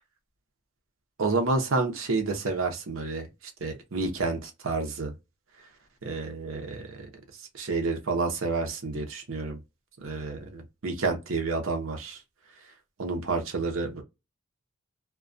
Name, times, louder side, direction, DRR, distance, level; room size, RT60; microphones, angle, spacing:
voice 1, 1.2-3.3 3.6-5.1 6.0-7.1 7.5-9.6 10.0-12.2 13.0-13.9, right 3 dB, 65° right, 0.7 m, -29 dB
2.2 x 2.2 x 2.5 m
head